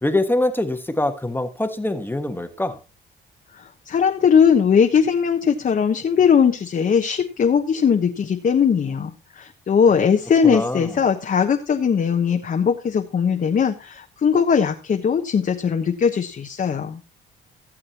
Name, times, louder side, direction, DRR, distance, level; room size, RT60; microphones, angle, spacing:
voice 1, 0.0-2.8 10.4-10.9, left 1 dB, 10° left, 7 dB, 1.4 m, -24 dB
voice 2, 3.5-17.0, left 7 dB, 45° left, 3 dB, 1.2 m, -19 dB
17.0 x 7.6 x 3.0 m, 0.29 s
cardioid pair, 90°, 20 cm